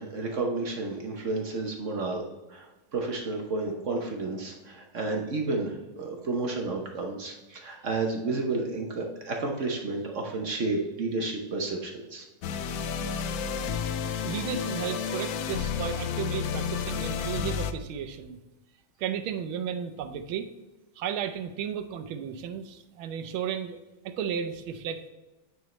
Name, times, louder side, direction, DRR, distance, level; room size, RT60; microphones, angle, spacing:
voice 1, 0.0-2.2 2.5-12.2, right 3 dB, 50° right, 1 dB, 0.9 m, -31 dB
sound 1, 12.4-17.7, left 7 dB, 90° left, 0.8 m, -31 dB
voice 2, 14.2-18.4 19.0-20.5 21.0-23.8 24.0-25.1, right 8 dB, 85° right, 9 dB, 1.5 m, -34 dB
9.2 x 4.6 x 3.2 m, 1.1 s
omnidirectional pair, 2.2 m